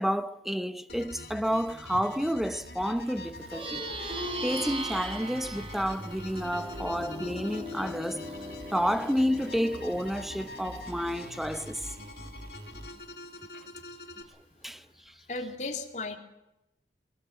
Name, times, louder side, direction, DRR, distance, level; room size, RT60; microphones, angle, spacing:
voice 1, 0.0-3.9 4.4-8.2 8.7-11.9 14.6-15.1, equal, ahead, 0.9 m, -30 dB
sound 1, 0.9-14.2, left 3 dB, 60° left, 2.9 m, -47 dB
sound 2, 0.9-12.9, equal, 70° right, 3.0 m, -47 dB
Plucked string instrument, 3.4-13.1, equal, 30° right, 3.4 m, -40 dB
voice 2, 15.3-16.2, left 3 dB, 40° left, 3.0 m, -35 dB
24.0 x 20.5 x 7.8 m
head